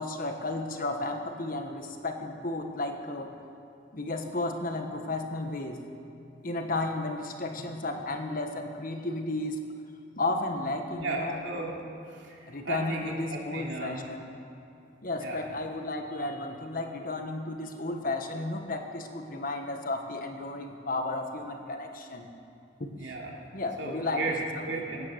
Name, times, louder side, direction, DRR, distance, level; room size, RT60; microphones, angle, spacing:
voice 1, 0.0-3.3 3.9-5.8 6.4-9.6 10.2-11.4 12.5-14.3 15.0-22.3 22.8-22.9 23.5-24.3 24.6-24.8, left 2 dB, 50° left, 5 dB, 1.4 m, -33 dB
voice 2, 10.9-11.7 12.1-14.0 15.2-15.5 22.9-23.4 23.8-25.1, right 2 dB, 80° right, -2 dB, 3.0 m, -35 dB
18.5 x 9.6 x 7.9 m, 2.6 s
head